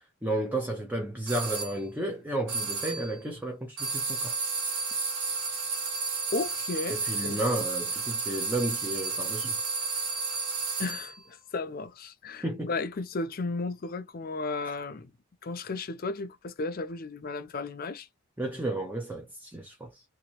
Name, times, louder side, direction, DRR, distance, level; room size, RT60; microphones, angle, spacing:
voice 1, 0.2-4.3 6.9-9.5 12.4-12.7 18.4-20.0, right 1 dB, 10° right, 0.5 m, -32 dB
sound 1, 1.3-1.8 2.5-3.1 3.8-11.1, right 4 dB, 65° right, 1.9 m, -32 dB
voice 2, 6.3-7.0 7.2-7.4 10.8-15.1 15.4-18.1, left 3 dB, 45° left, 0.5 m, -34 dB
2.9 x 2.5 x 2.9 m
head